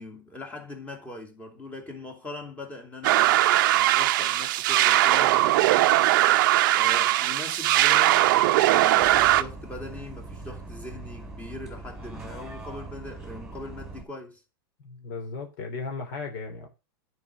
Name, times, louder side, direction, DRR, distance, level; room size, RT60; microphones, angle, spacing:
voice 1, 0.0-5.9 6.7-14.4, left 2 dB, 10° left, 2.6 m, -41 dB
sound 1, 3.0-9.4, right 15 dB, 60° right, 0.6 m, -20 dB
Bus, 9.0-14.0, right 3 dB, 5° right, 2.7 m, -41 dB
voice 2, 14.8-16.7, left 4 dB, 55° left, 3.2 m, -36 dB
9.8 x 4.8 x 6.3 m
hypercardioid pair, 120°, 12 cm